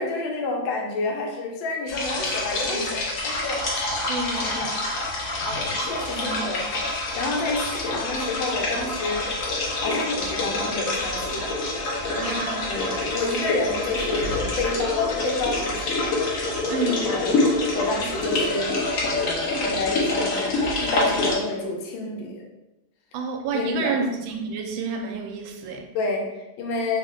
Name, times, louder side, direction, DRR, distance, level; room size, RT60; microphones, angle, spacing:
voice 1, 0.0-3.6 4.4-4.7 5.4-6.7 6.9-9.3 9.8-11.5 12.6-16.1 17.0-17.3 17.7-18.7 19.1-22.4 23.5-24.0 25.9-27.0, left 3 dB, 80° left, 0 dB, 1.4 m, -29 dB
sound 1, 1.9-21.4, left 2 dB, 60° left, 0.9 m, -26 dB
voice 2, 4.1-4.8 6.2-6.6 12.1-12.7 16.7-17.1 23.1-25.8, right 4 dB, 85° right, 3 dB, 1.3 m, -29 dB
3.4 x 2.1 x 3.7 m, 0.97 s
omnidirectional pair, 2.1 m